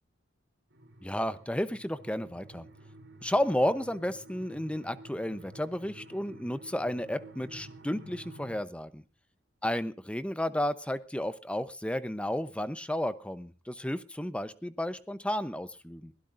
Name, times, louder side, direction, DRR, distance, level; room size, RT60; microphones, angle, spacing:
sound 1, 0.7-8.6, right 1 dB, 65° right, 3.3 m, -51 dB
voice 1, 1.0-2.7 3.2-9.0 9.6-16.1, left 1 dB, 5° left, 13 dB, 0.8 m, -32 dB
22.5 x 16.5 x 2.6 m, 0.34 s
head